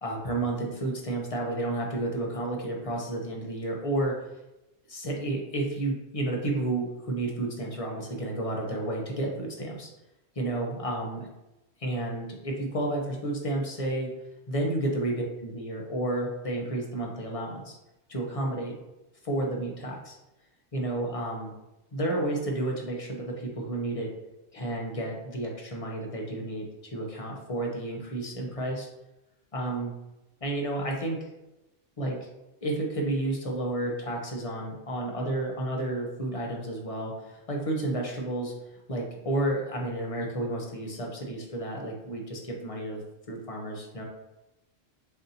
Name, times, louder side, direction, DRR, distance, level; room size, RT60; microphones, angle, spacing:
voice 1, 0.0-4.1 4.9-9.9 10.3-11.3 11.8-14.1 14.5-17.8 18.1-18.7 19.2-20.2 20.7-21.5 21.9-24.1 24.5-28.9 29.5-29.9 30.4-31.3 32.0-32.3 32.6-38.5 38.9-43.0 43.3-44.0, right 1 dB, 30° left, -1 dB, 0.8 m, -31 dB
6.9 x 2.7 x 2.8 m, 0.96 s
omnidirectional pair, 1.3 m